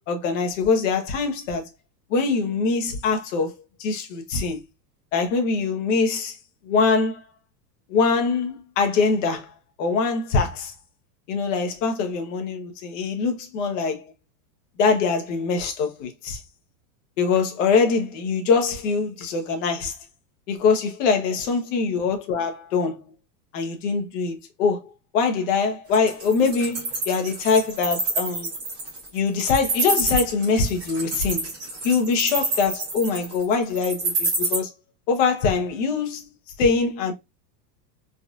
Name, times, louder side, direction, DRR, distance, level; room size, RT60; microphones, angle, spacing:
voice 1, 0.1-1.7 2.1-3.5 3.8-4.6 5.1-6.4 6.6-7.2 7.9-9.5 9.8-10.7 11.3-14.1 14.8-16.4 17.2-20.0 20.5-23.1 23.5-28.5 29.1-31.5 31.8-34.7 35.1-36.2 36.6-37.1, left 4 dB, 50° left, 1.1 m, -23 dB
Wild animals, 25.9-34.6, right 3 dB, 10° right, 0.4 m, -27 dB
3.9 x 2.5 x 2.4 m
supercardioid pair, 165°, 50 cm